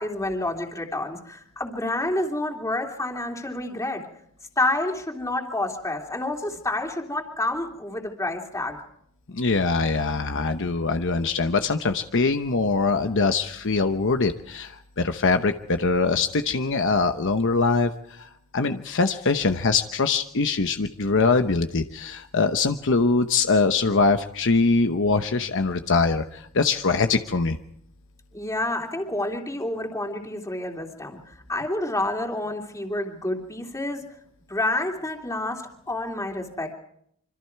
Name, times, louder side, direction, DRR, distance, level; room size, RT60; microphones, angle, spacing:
voice 1, 0.0-4.0 4.6-8.8 28.3-34.1 34.5-36.7, left 2 dB, 15° left, 2 dB, 3.0 m, -29 dB
voice 2, 9.3-17.9 18.2-18.3 18.5-27.6, left 4 dB, 60° left, 7 dB, 1.0 m, -23 dB
26.5 x 25.0 x 4.7 m, 0.71 s
head